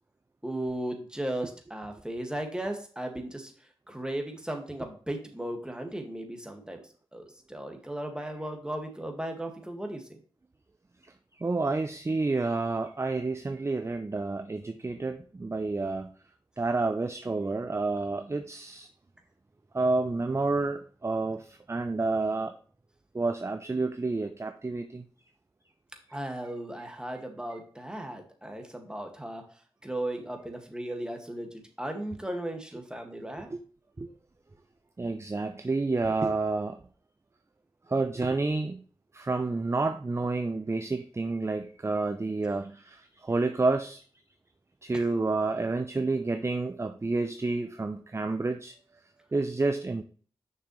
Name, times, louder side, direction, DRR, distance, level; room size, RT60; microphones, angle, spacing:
voice 1, 0.4-3.5 3.9-6.8 7.1-10.2 26.1-29.4 29.8-33.5 44.9-45.0, right 1 dB, 10° right, 3 dB, 1.9 m, -36 dB
voice 2, 11.4-16.1 16.6-18.9 19.7-22.6 23.1-25.0 33.5-33.6 34.0-34.1 35.0-36.8 37.9-38.8 39.1-44.0 44.8-48.7 49.3-50.0, right 3 dB, 30° right, 9 dB, 0.6 m, -29 dB
6.7 x 6.0 x 3.1 m, 0.43 s
cardioid pair, 50°, 10 cm